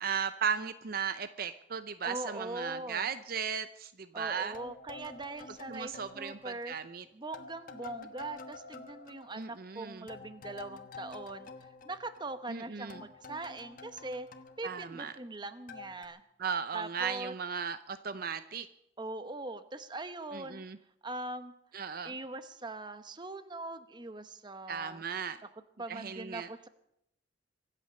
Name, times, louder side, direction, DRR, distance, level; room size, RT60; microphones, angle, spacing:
voice 1, 0.0-4.5 5.7-7.0 9.3-10.1 12.5-13.1 14.6-15.1 16.4-18.7 20.3-20.8 21.7-22.1 24.7-25.4 25.9-26.5, right 6 dB, 55° right, 11 dB, 0.6 m, -36 dB
voice 2, 2.0-3.1 4.1-6.8 7.1-11.5 11.8-14.3 14.6-16.2 16.7-17.4 19.0-20.6 21.0-21.5 22.0-25.0 25.4-25.5 25.8-26.7, right 2 dB, 25° right, 10 dB, 0.9 m, -41 dB
sound 1, 4.5-7.0 7.3-12.6 12.9-15.4 15.7-16.0, left 4 dB, 50° left, 1.3 m, -49 dB
24.5 x 8.5 x 6.7 m, 0.78 s
head